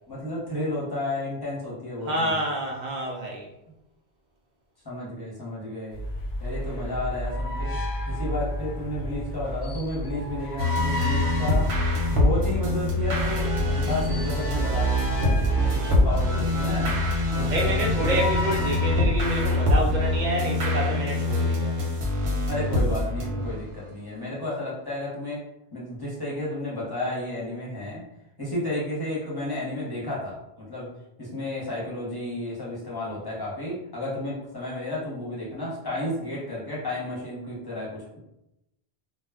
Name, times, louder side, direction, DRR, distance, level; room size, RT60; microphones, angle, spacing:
voice 1, 0.1-2.5 4.8-6.0 6.4-7.8 8.1-11.7 12.1-18.2 22.5-25.4 25.7-28.0 28.4-30.4 30.7-30.9 31.2-38.2, left 1 dB, 25° left, -6 dB, 0.8 m, -32 dB
voice 2, 2.0-3.5 17.5-21.8, right 1 dB, 55° right, 0 dB, 0.6 m, -28 dB
sound 1, 5.9-20.2, equal, 80° left, 0.8 m, -31 dB
sound 2, 10.6-23.9, left 2 dB, 85° right, 0.9 m, -25 dB
2.2 x 2.1 x 3.4 m, 0.87 s
omnidirectional pair, 1.0 m